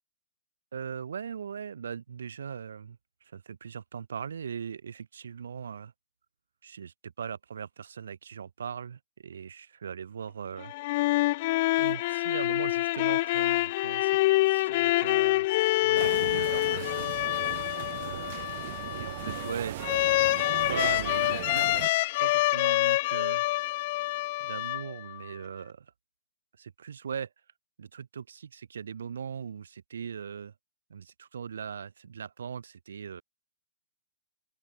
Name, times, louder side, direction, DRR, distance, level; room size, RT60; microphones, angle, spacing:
voice 1, 0.7-3.0 3.3-5.9 6.6-10.7 11.8-14.2 14.5-15.5 15.8-17.1 18.0-20.0 20.3-23.4 24.1-25.9 26.6-27.3 27.8-30.5 30.9-33.2, right 7 dB, 80° right, 7.6 m, -39 dB
sound 1, 10.6-25.2, left 19 dB, 30° left, 0.5 m, -27 dB
sound 2, 16.0-21.9, right 17 dB, 35° right, 1.7 m, -38 dB
open air
hypercardioid pair, 170°, 0 cm